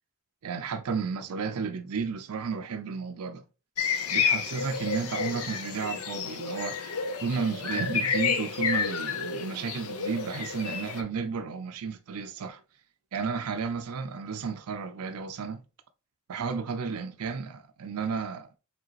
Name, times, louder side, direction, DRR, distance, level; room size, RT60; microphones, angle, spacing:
voice 1, 0.4-3.4 4.1-12.6 13.1-15.6 16.3-18.5, right 5 dB, 80° right, 0.4 m, -33 dB
sound 1, 3.8-11.0, left 6 dB, 80° left, 0.7 m, -30 dB
4.9 x 3.4 x 2.9 m
head